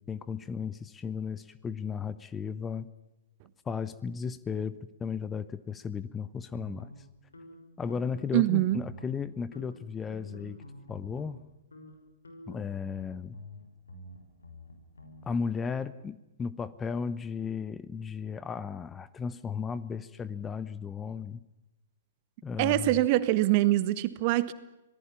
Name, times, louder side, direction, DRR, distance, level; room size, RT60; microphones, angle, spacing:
voice 1, 0.0-2.9 3.6-6.9 7.8-10.6 10.9-11.4 12.5-13.4 15.2-21.4 22.4-23.0, left 6 dB, 15° left, 16 dB, 0.9 m, -35 dB
sound 1, 6.5-8.4 8.6-9.3 9.5-11.4 11.7-11.9 12.2-15.2, equal, 75° left, 5.7 m, -49 dB
voice 2, 8.3-8.8 22.6-24.5, right 16 dB, 40° right, 15 dB, 1.3 m, -24 dB
26.0 x 18.5 x 7.1 m, 0.96 s
figure-of-eight pair, 115°, 0 cm